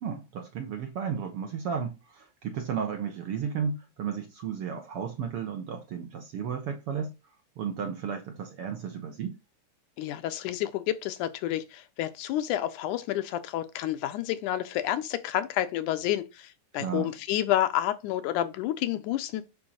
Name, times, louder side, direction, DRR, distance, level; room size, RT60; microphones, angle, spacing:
voice 1, 0.0-7.1 7.6-9.4 16.8-17.1, right 7 dB, 65° right, 1.6 m, -33 dB
voice 2, 10.0-19.4, left 12 dB, 80° left, 2.2 m, -29 dB
8.7 x 3.8 x 6.4 m
omnidirectional pair, 3.6 m